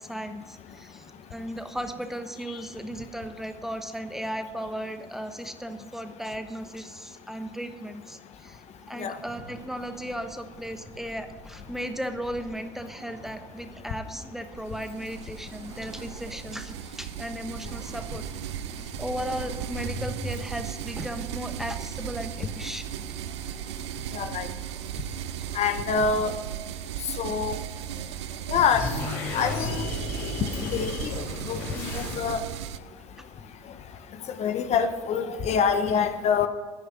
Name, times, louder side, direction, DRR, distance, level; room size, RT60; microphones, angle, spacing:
voice 1, 0.0-18.2 18.8-22.9, equal, 5° right, 8 dB, 1.2 m, -36 dB
sound 1, 9.2-26.3, right 1 dB, 30° right, 2.6 m, -45 dB
sound 2, 14.7-32.8, right 12 dB, 90° right, 0.5 m, -36 dB
voice 2, 24.1-24.5 25.5-26.3 27.2-27.6 28.5-28.9 29.3-29.8 30.6-32.4 34.4-36.5, left 6 dB, 50° left, 8 dB, 1.2 m, -26 dB
sound 3, 28.7-32.5, left 4 dB, 70° left, 3.9 m, -33 dB
14.5 x 9.9 x 3.8 m, 1.5 s
hypercardioid pair, 75°, 14 cm